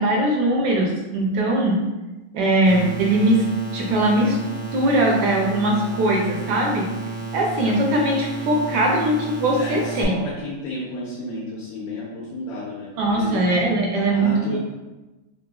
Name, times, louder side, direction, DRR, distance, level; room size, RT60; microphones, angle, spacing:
voice 1, 0.0-1.8 2.3-3.4 3.7-4.4 4.7-6.9 7.3-10.2 13.0-14.6, right 1 dB, 75° right, -1 dB, 1.0 m, -20 dB
sound 1, 2.7-10.1, right 3 dB, 90° right, 1.7 m, -32 dB
voice 2, 9.6-13.4 14.1-14.6, left 1 dB, 75° left, -6 dB, 1.3 m, -32 dB
3.9 x 2.5 x 2.2 m, 1.1 s
omnidirectional pair, 2.2 m